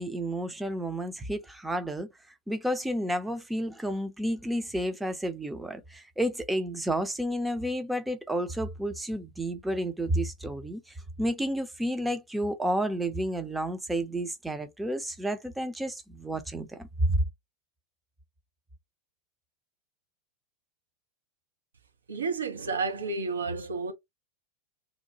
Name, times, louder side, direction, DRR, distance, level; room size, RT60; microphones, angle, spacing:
voice 1, 0.0-2.1 2.5-10.8 11.2-17.2, right 1 dB, 5° right, 0.6 m, -31 dB
voice 2, 22.1-23.9, right 4 dB, 75° right, 0.7 m, -31 dB
2.8 x 2.2 x 2.7 m
figure-of-eight pair, 90°, 0 cm